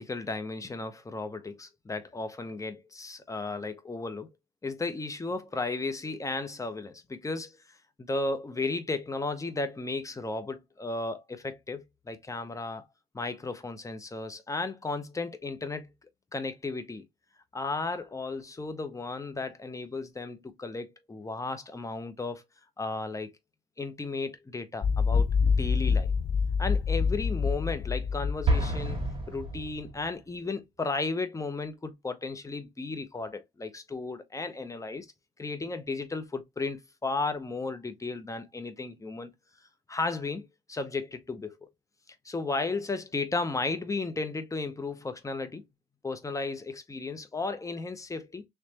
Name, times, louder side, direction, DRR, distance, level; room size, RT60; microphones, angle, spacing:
voice 1, 0.0-4.3 4.6-12.9 13.1-15.9 16.3-17.1 17.5-22.4 22.8-23.3 23.8-25.3 25.6-26.1 26.6-35.1 35.4-39.3 39.9-41.7 42.1-45.7 46.0-48.5, left 3 dB, 15° left, 0.8 m, -34 dB
sound 1, 24.8-29.5, left 5 dB, 30° left, 0.4 m, -27 dB
Explosion, 28.4-30.3, right 4 dB, 25° right, 1.7 m, -30 dB
3.2 x 3.1 x 2.9 m
cardioid pair, 90°, 20 cm